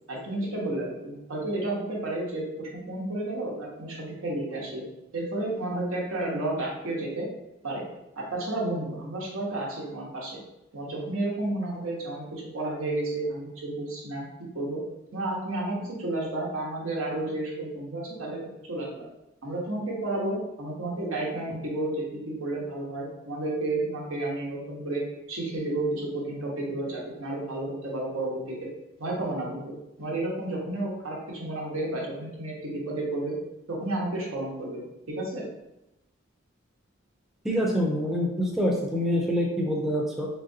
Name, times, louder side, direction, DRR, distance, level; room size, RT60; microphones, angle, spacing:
voice 1, 0.1-4.8 5.1-7.3 7.6-7.9 8.2-10.4 10.7-14.3 14.5-14.8 15.1-18.4 18.7-19.0 19.4-28.7 29.0-33.3 33.7-35.5, right 2 dB, 90° right, -3 dB, 1.2 m, -31 dB
voice 2, 37.4-40.3, equal, ahead, -2 dB, 0.4 m, -26 dB
3.9 x 3.4 x 2.7 m, 0.91 s
head